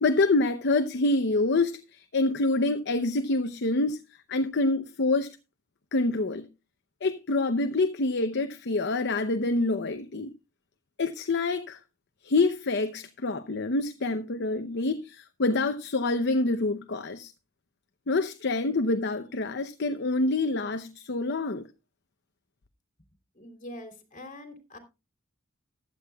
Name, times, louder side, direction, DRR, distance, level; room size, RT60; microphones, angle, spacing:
voice 1, 0.0-4.0 4.3-5.3 5.9-6.5 7.0-10.3 11.0-11.8 12.2-17.3 18.1-21.7, left 2 dB, 55° left, 0.8 m, -26 dB
voice 2, 23.3-24.8, left 1 dB, 40° left, 3.2 m, -44 dB
15.0 x 11.5 x 2.3 m
head